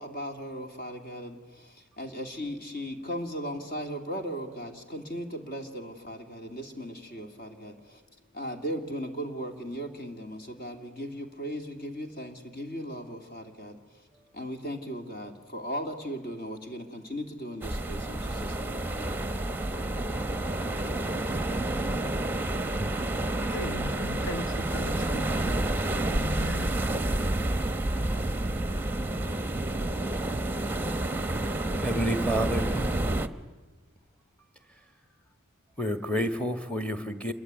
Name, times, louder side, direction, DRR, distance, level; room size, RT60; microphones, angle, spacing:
voice 1, 0.0-8.0 8.3-13.8 14.3-19.6, equal, 45° left, 4 dB, 2.6 m, -37 dB
sound 1, 17.6-33.3, right 1 dB, 10° right, 1.0 m, -29 dB
sound 2, 20.0-29.7, left 4 dB, 25° left, 7.8 m, -48 dB
voice 2, 23.5-25.4 26.0-26.7, left 1 dB, 75° left, 7 dB, 1.9 m, -37 dB
voice 3, 31.8-32.8 35.8-37.3, equal, 5° left, 9 dB, 1.5 m, -29 dB
27.5 x 22.5 x 9.5 m, 1.3 s
head